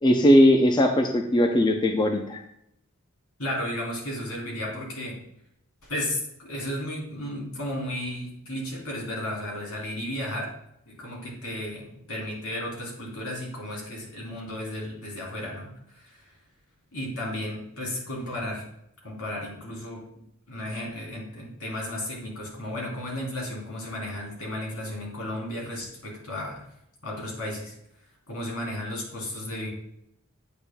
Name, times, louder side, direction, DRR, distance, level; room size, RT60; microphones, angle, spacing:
voice 1, 0.0-2.4, equal, 20° left, 4 dB, 0.5 m, -19 dB
voice 2, 3.4-5.2 5.8-10.5 10.9-16.3 16.9-18.7 19.0-20.0 20.5-26.6 27.0-27.7 28.3-29.7, left 1 dB, 80° left, -3 dB, 3.3 m, -34 dB
8.7 x 8.5 x 2.3 m, 0.75 s
head